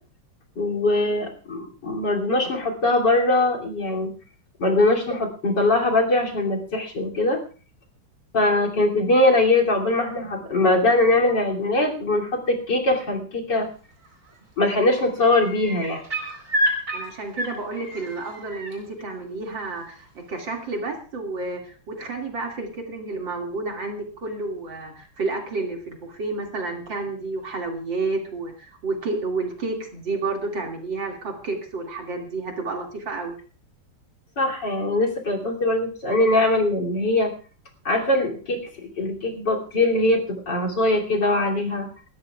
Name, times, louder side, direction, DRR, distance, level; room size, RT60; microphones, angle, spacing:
voice 1, 0.6-4.1 4.6-7.4 8.3-13.7 14.6-16.0 34.4-37.3 37.9-41.9, left 2 dB, 55° left, -1 dB, 3.6 m, -22 dB
sound 1, 14.0-14.4 14.7-18.7 20.4-20.5, equal, 45° right, 4.7 m, -29 dB
voice 2, 16.9-33.4, right 3 dB, 65° right, 1 dB, 3.1 m, -30 dB
29.0 x 13.5 x 2.4 m, 0.38 s
omnidirectional pair, 2.2 m